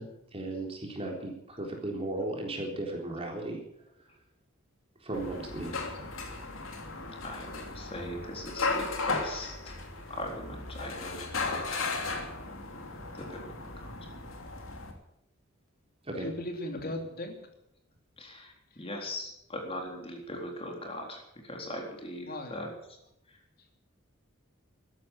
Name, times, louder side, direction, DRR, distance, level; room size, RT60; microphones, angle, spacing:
voice 1, 0.0-3.6 5.0-5.8 16.1-16.3, right 2 dB, 30° right, 0 dB, 3.9 m, -36 dB
sound 1, 5.1-14.9, left 3 dB, 75° left, 2.9 m, -36 dB
voice 2, 7.2-9.7 10.1-12.0 13.1-13.4 18.2-22.7, left 1 dB, 30° left, 1 dB, 4.0 m, -40 dB
voice 3, 16.2-17.4 18.7-18.9 22.2-22.6, left 1 dB, 45° left, 4 dB, 2.9 m, -37 dB
14.0 x 11.5 x 8.4 m, 0.77 s
head